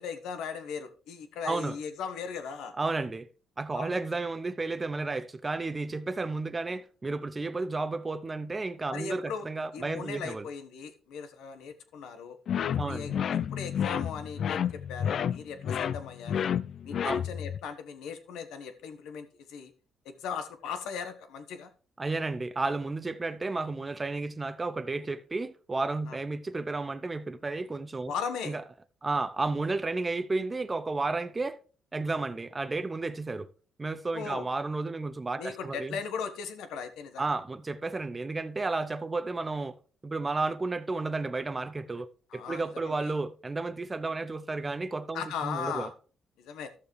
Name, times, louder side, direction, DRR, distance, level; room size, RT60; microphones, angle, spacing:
voice 1, 0.0-2.7 3.7-4.0 8.9-9.5 9.7-12.4 12.8-13.1 13.5-16.5 16.8-19.7 20.0-21.7 26.1-26.2 28.1-28.5 34.1-34.5 35.4-37.3 42.3-43.1 45.1-45.9 46.4-46.7, left 6 dB, 85° left, 1.2 m, -38 dB
voice 2, 1.4-1.8 2.8-3.3 3.6-10.5 12.8-13.1 17.0-17.2 22.0-28.1 28.4-28.6 29.0-31.6 31.9-33.5 33.8-36.0 37.2-39.8 40.0-45.9, right 3 dB, 25° right, 0.6 m, -32 dB
sound 1, 12.5-17.6, left 8 dB, 65° left, 0.3 m, -30 dB
12.5 x 6.8 x 3.2 m
cardioid pair, 90°, 0 cm